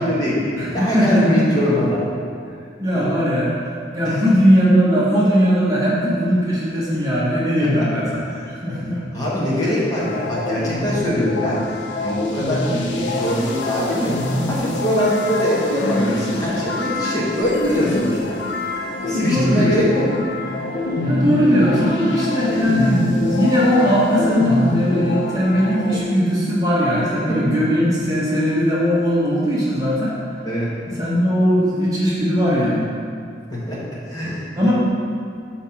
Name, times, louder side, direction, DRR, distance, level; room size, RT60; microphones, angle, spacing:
voice 1, 0.0-0.4 0.7-2.1 2.9-3.1 4.0-4.2 7.6-7.8 8.3-8.4 9.1-11.6 12.0-14.1 14.5-18.3 19.0-20.1 30.4-30.7 33.5-33.8 34.0-34.7, left 1 dB, 20° left, -7 dB, 1.3 m, -22 dB
voice 2, 0.6-1.4 2.8-3.5 3.9-8.1 8.5-9.0 19.1-19.7 21.0-30.1 30.9-32.9 34.6-34.7, equal, 20° right, -8 dB, 1.2 m, -19 dB
sound 1, 10.0-26.0, left 1 dB, 85° left, 0.7 m, -24 dB
5.8 x 4.3 x 5.8 m, 2.3 s
head